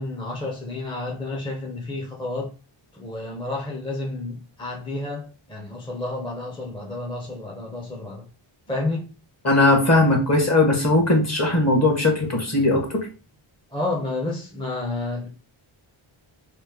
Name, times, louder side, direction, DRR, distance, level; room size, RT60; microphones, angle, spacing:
voice 1, 0.0-2.5 2.9-8.3 8.7-9.1 13.7-15.3, left 2 dB, 10° left, 0.7 m, -30 dB
voice 2, 9.4-13.1, left 2 dB, 30° left, 1.1 m, -19 dB
3.1 x 2.1 x 3.4 m
wide cardioid pair, 80°, 49 cm